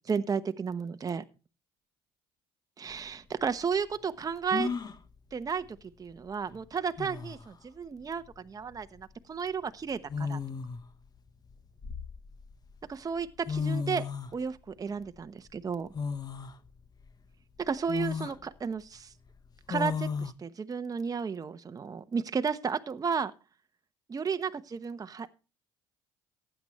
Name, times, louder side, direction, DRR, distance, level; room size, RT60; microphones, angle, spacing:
voice 1, 0.0-1.2 2.8-4.7 5.3-10.4 12.9-15.9 17.6-19.1 19.7-23.3 24.1-25.3, right 6 dB, 30° right, 9 dB, 1.1 m, -33 dB
sound 1, 2.9-3.0 4.5-5.0 6.5-6.6 7.0-7.5 8.8-9.0 10.1-10.9 11.5-12.5 13.2-13.3 13.5-14.3 15.9-16.5 17.1-17.2 17.9-18.4 19.7-20.3, left 5 dB, 35° left, 1.4 m, -34 dB
15.5 x 10.0 x 3.2 m, 0.33 s
hypercardioid pair, 65°, 12 cm